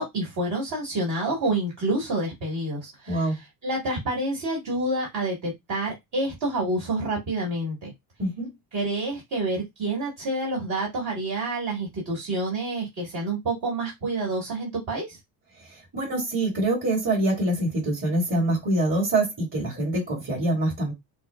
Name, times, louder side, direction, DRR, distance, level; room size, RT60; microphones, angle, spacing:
voice 1, 0.0-3.4 3.6-7.9 8.7-15.2, right 2 dB, 55° right, 2.0 m, -28 dB
voice 2, 3.1-3.4 8.2-8.5 15.9-20.9, right 1 dB, 35° right, 2.4 m, -25 dB
6.0 x 2.0 x 2.4 m
cardioid pair, 145°, 37 cm